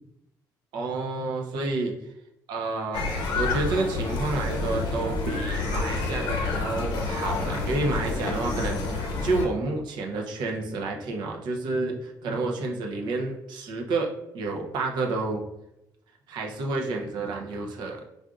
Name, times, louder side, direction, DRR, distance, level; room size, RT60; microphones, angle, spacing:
voice 1, 0.7-1.9 2.5-15.4 16.3-18.0, right 3 dB, 80° right, 1 dB, 0.7 m, -30 dB
sound 1, 2.9-9.5, left 3 dB, 75° left, 0.8 m, -28 dB
4.8 x 2.5 x 2.4 m, 0.87 s
cardioid pair, 115°, 7 cm